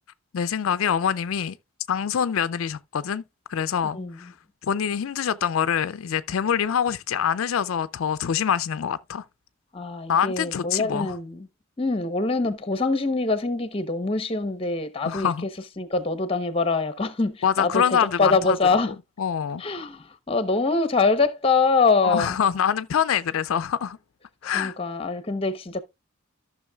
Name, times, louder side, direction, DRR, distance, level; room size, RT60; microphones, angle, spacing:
voice 1, 0.3-1.6 1.9-3.2 3.5-4.3 4.7-9.2 10.1-11.1 15.1-15.5 17.4-18.8 19.2-19.6 22.0-24.0 24.4-24.8, left 8 dB, 75° left, 0.4 m, -25 dB
voice 2, 3.9-4.3 9.7-11.5 11.8-15.3 15.8-19.0 19.6-22.4 24.4-25.8, left 4 dB, 25° left, 0.8 m, -24 dB
14.0 x 6.1 x 2.3 m
head